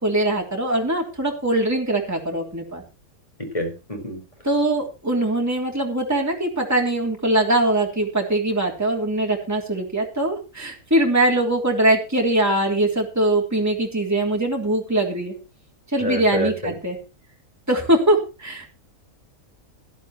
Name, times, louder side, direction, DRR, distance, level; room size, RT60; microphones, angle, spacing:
voice 1, 0.0-2.8 4.4-15.3 15.9-17.0 17.7-18.7, right 1 dB, 10° right, 0 dB, 3.4 m, -22 dB
voice 2, 3.4-4.2 16.0-16.7, left 1 dB, 20° left, 3 dB, 5.0 m, -27 dB
16.5 x 13.0 x 3.2 m, 0.31 s
omnidirectional pair, 1.5 m